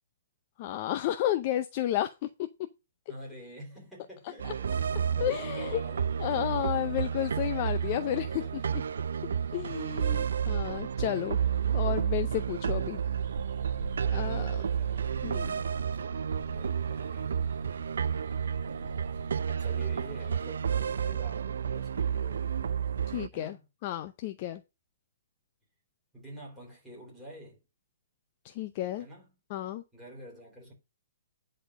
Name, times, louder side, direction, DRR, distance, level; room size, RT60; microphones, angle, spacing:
voice 1, 0.6-2.1 5.2-5.8 6.2-8.8 9.5-11.4 11.7-13.0 14.0-14.6 15.2-15.5 23.1-23.6 23.8-24.6 28.4-29.1 29.5-29.8, left 13 dB, 25° left, 0.6 m, -32 dB
voice 2, 3.1-4.7 5.1-6.5 14.6-15.1 15.5-17.4 19.5-22.8 23.3-23.7 26.1-27.6 29.0-29.4 29.9-30.7, right 1 dB, ahead, 3.8 m, -48 dB
sound 1, 4.4-23.3, right 7 dB, 75° right, 0.5 m, -31 dB
sound 2, 5.3-20.4, right 3 dB, 40° right, 3.4 m, -45 dB
10.5 x 4.4 x 6.3 m
hypercardioid pair, 175°, 0 cm